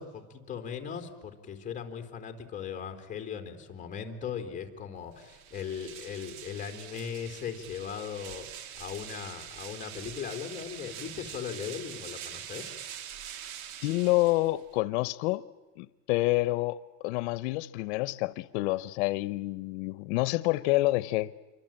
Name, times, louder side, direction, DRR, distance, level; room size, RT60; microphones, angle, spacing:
voice 1, 0.0-12.7, left 7 dB, 20° left, 3.5 m, -38 dB
sound 1, 5.1-14.8, right 10 dB, 80° right, 1.9 m, -44 dB
voice 2, 13.8-15.4 15.8-21.3, left 19 dB, 85° left, 0.8 m, -28 dB
27.0 x 24.5 x 8.8 m
cardioid pair, 150°, 33 cm